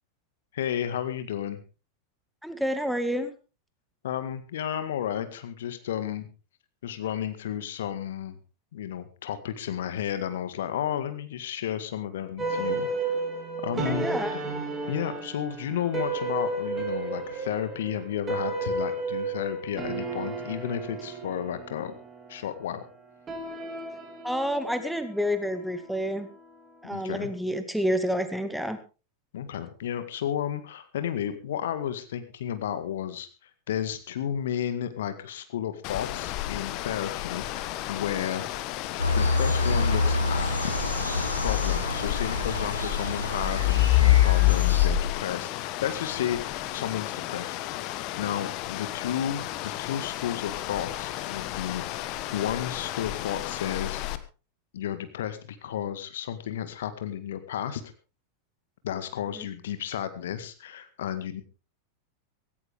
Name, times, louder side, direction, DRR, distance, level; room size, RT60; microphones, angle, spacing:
voice 1, 0.5-1.6 4.0-6.3 6.8-8.4 8.7-13.2 13.6-14.4 14.9-21.9 22.3-22.8 26.8-27.3 29.3-38.4 39.2-40.7 41.2-47.6 48.2-51.8 52.3-54.0 54.7-57.8 58.8-61.4, left 10 dB, 60° left, 10 dB, 1.8 m, -32 dB
voice 2, 2.4-3.3 13.8-14.3 24.2-26.3 26.8-28.8 59.3-59.5, equal, ahead, 9 dB, 1.9 m, -29 dB
sound 1, 12.4-26.9, right 3 dB, 20° right, 3.5 m, -33 dB
sound 2, 35.8-54.2, left 15 dB, 40° left, 1.3 m, -29 dB
sound 3, 39.0-44.9, left 2 dB, 85° left, 3.3 m, -28 dB
17.0 x 17.0 x 3.6 m, 0.33 s
figure-of-eight pair, 90°, 0 cm